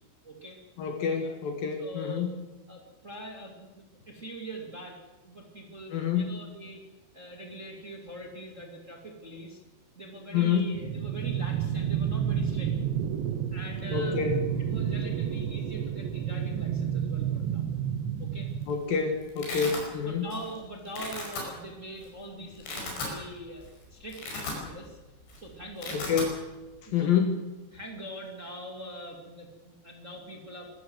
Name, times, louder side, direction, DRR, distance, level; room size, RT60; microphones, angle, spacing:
voice 1, 0.2-0.6 1.2-1.3 1.8-2.3 2.7-6.8 7.1-9.6 9.9-12.7 13.5-14.2 14.6-17.8 18.2-18.5 19.5-19.7 20.0-23.7 23.9-25.0 25.4-26.0 26.8-27.1 27.7-30.6, right 1 dB, 25° right, 2 dB, 2.1 m, -43 dB
voice 2, 0.8-2.3 5.9-6.4 10.3-10.7 13.9-14.4 18.7-20.3 25.9-26.4 26.9-27.4, left 7 dB, 60° left, 6 dB, 2.9 m, -27 dB
sound 1, 10.7-18.7, right 9 dB, 80° right, 3.4 m, -30 dB
Domestic sounds home sounds, 18.4-18.7 19.0-19.8 20.3-20.6 20.9-21.4 22.0-22.1 22.5-23.2 23.6-23.7 24.0-25.0 25.2-25.4 25.6-26.3, left 3 dB, 80° left, 7.3 m, -36 dB
24.0 x 14.0 x 8.0 m, 1.1 s
omnidirectional pair, 5.1 m